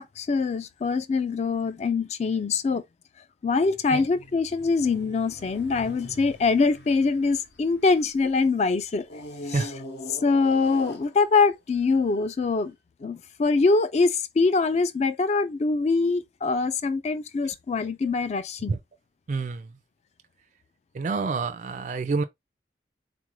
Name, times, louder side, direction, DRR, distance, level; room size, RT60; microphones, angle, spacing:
voice 1, 0.0-2.8 3.4-9.1 9.5-9.7 10.2-12.7 13.0-18.8, left 4 dB, 40° left, 0.3 m, -24 dB
sound 1, 3.6-8.3 9.0-11.6 12.3-12.4, left 1 dB, 65° left, 0.7 m, -43 dB
voice 2, 19.3-19.7 20.9-22.2, right 4 dB, 45° right, 0.3 m, -28 dB
3.9 x 2.4 x 3.0 m
head